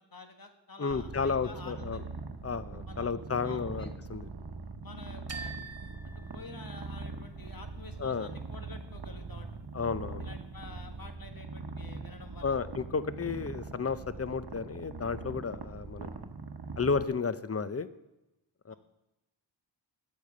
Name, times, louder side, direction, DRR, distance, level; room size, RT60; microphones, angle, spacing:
voice 1, 0.0-2.0 2.9-3.1 3.4-3.9 4.8-5.6 6.0-9.5 10.2-12.6 18.7-18.8, left 3 dB, 45° left, 6 dB, 1.7 m, -49 dB
voice 2, 0.8-2.0 2.4-4.3 8.0-8.3 9.7-10.3 12.4-16.1 16.8-17.9 18.7-18.8, left 5 dB, 30° left, 14 dB, 0.7 m, -32 dB
Purr, 0.9-17.1, right 3 dB, 50° right, 1.1 m, -42 dB
sound 1, 5.3-7.2, right 4 dB, 30° right, 1.3 m, -45 dB
11.0 x 8.3 x 6.7 m, 0.96 s
cardioid pair, 50°, 47 cm